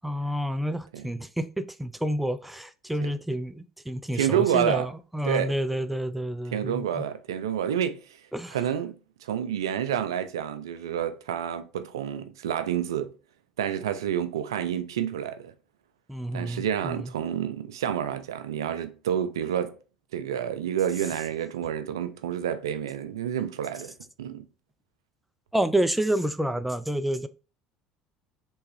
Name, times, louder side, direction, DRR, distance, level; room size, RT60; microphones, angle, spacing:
voice 1, 0.0-7.1 8.3-8.6 16.1-17.1 25.5-27.3, right 1 dB, 5° right, 0.4 m, -29 dB
voice 2, 4.1-4.9 5.2-5.5 6.5-8.2 8.5-8.9 9.2-13.1 13.6-15.5 16.3-19.8 20.1-24.5, right 9 dB, 85° right, 0.3 m, -29 dB
3.3 x 3.1 x 3.0 m
hypercardioid pair, 70°, 2 cm